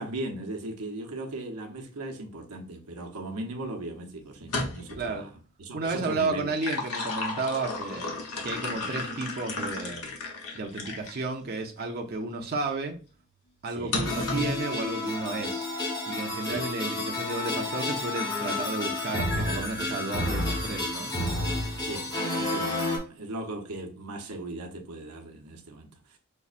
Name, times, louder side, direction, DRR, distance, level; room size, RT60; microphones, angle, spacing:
voice 1, 0.0-6.5 13.7-14.0 16.4-16.7 21.8-26.2, right 2 dB, 90° right, 0.7 m, -38 dB
sound 1, 4.4-5.1 6.3-11.2 11.8-11.9 13.9-14.6, left 2 dB, 80° left, 0.9 m, -33 dB
voice 2, 5.7-8.1 8.4-10.0 10.5-13.0 13.6-15.7 16.1-21.1, right 3 dB, 45° right, 0.5 m, -32 dB
sound 2, 14.0-23.0, left 2 dB, 20° left, 0.9 m, -30 dB
5.3 x 2.1 x 2.4 m
head